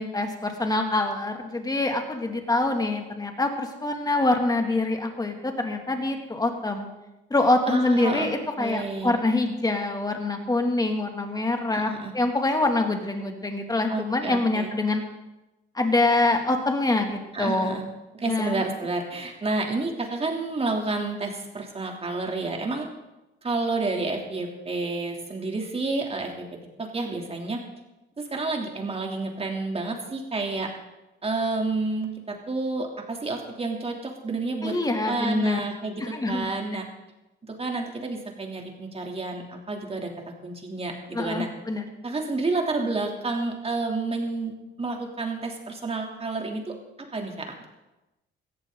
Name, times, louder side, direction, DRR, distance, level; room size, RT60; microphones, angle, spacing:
voice 1, 0.0-6.9 7.3-15.0 15.7-17.8 18.2-18.6 34.6-35.6 36.0-36.5 41.1-41.9, left 2 dB, 20° left, 4 dB, 2.4 m, -25 dB
voice 2, 7.7-9.2 11.7-12.1 13.9-14.7 17.3-17.8 18.1-22.9 23.4-27.6 28.2-30.7 31.2-34.7 35.1-36.9 37.4-40.1 40.4-41.5 42.0-46.8 47.1-47.7, right 3 dB, 30° right, 1 dB, 3.0 m, -30 dB
18.0 x 14.0 x 3.9 m, 1.0 s
cardioid pair, 90°, 20 cm